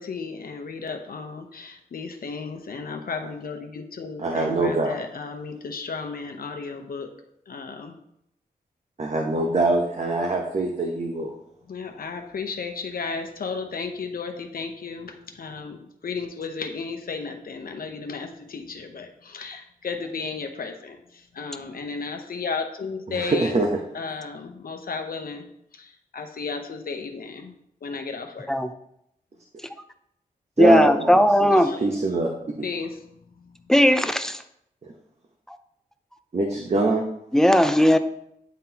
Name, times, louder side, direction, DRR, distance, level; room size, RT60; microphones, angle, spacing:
voice 1, 0.0-7.1 7.5-7.9 11.7-23.6 23.9-25.5 25.7-27.5 27.8-28.5 31.6-32.3 32.6-33.0 33.4-33.5, left 4 dB, 65° left, 6 dB, 0.8 m, -34 dB
voice 2, 4.2-4.9 9.0-11.3 23.1-23.7 30.6-31.5 31.8-32.3 32.6-32.7 36.3-37.0, right 2 dB, 45° right, 1 dB, 0.9 m, -23 dB
voice 3, 30.6-31.7 33.7-34.4 37.3-38.0, equal, 5° left, 9 dB, 0.5 m, -17 dB
9.4 x 3.7 x 2.9 m, 0.76 s
cardioid pair, 55°, 16 cm